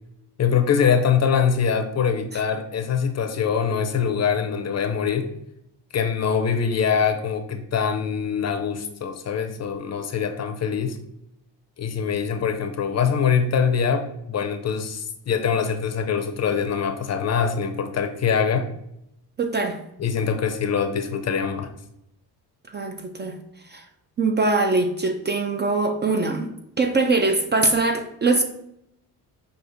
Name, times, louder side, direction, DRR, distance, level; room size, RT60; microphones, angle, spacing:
voice 1, 0.4-5.3 5.9-11.0 11.8-18.7 20.0-21.7, left 6 dB, 40° left, 7 dB, 0.6 m, -23 dB
voice 2, 19.4-19.8 22.7-23.4 23.7-23.8 24.2-26.5 26.8-28.4, right 3 dB, 30° right, 5 dB, 0.4 m, -22 dB
6.2 x 2.4 x 2.5 m, 0.79 s
cardioid pair, 85°, 40 cm